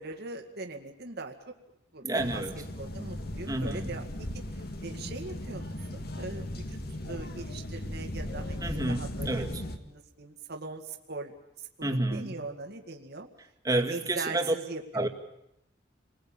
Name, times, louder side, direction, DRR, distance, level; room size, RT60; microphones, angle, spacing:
voice 1, 0.0-1.3 1.9-2.4 2.8-4.1 4.8-9.5 9.8-11.3 11.6-13.3 13.7-15.1, right 3 dB, 60° right, 4 dB, 2.1 m, -40 dB
voice 2, 2.0-2.6 3.5-4.0 8.6-9.6 11.8-12.4 13.6-14.5 14.9-15.1, right 2 dB, 20° right, 3 dB, 2.1 m, -30 dB
sound 1, 2.2-9.8, left 1 dB, 55° left, 2.1 m, -37 dB
29.5 x 20.5 x 8.9 m, 0.85 s
head